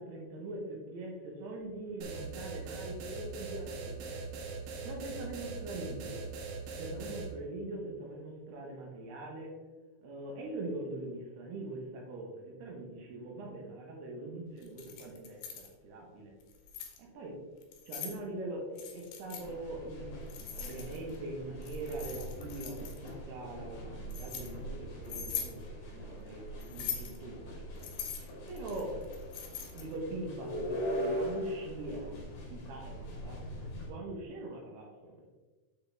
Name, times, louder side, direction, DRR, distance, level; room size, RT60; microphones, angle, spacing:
voice 1, 0.0-4.2 4.8-6.2 6.8-9.6 10.0-16.3 17.0-17.4 17.9-27.6 28.5-29.0 29.7-35.2, right 2 dB, 70° right, 0 dB, 2.8 m, -42 dB
sound 1, 2.0-7.3, right 4 dB, 85° right, 3.9 m, -41 dB
Keys jangling, 14.6-15.7 16.4-17.0 17.6-18.2 18.8-19.4 20.3-21.2 21.6-23.1 23.7-24.5 25.0-25.5 26.6-27.2 27.8-29.9, left 8 dB, 70° left, 2.6 m, -41 dB
sound 2, 19.4-33.9, equal, 50° left, 2.7 m, -41 dB
8.2 x 6.4 x 3.5 m, 1.3 s
omnidirectional pair, 5.7 m